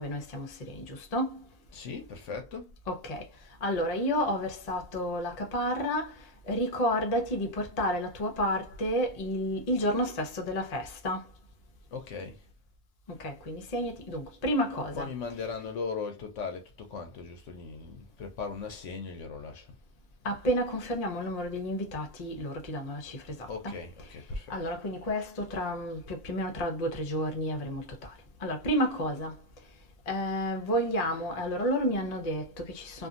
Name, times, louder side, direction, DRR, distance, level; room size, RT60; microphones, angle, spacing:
voice 1, 0.0-1.4 2.9-3.3 3.6-11.3 13.2-15.1 20.2-23.7 24.5-28.1 28.4-29.4 30.1-33.1, equal, 45° left, 0.5 m, -31 dB
voice 2, 1.7-2.8 11.9-12.5 14.9-19.8 23.5-24.6, left 5 dB, 65° left, 0.9 m, -38 dB
2.7 x 2.5 x 2.4 m
omnidirectional pair, 1.5 m